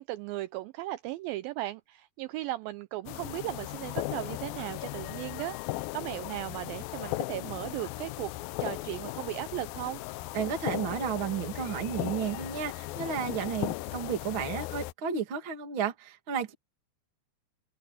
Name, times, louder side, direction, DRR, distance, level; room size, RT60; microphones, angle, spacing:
voice 1, 0.0-8.3 8.6-10.0, right 16 dB, 90° right, 2.0 m, -37 dB
sound 1, 3.1-14.9, left 19 dB, 85° left, 2.0 m, -37 dB
voice 2, 10.3-16.5, right 7 dB, 35° right, 2.7 m, -32 dB
omnidirectional pair, 4.8 m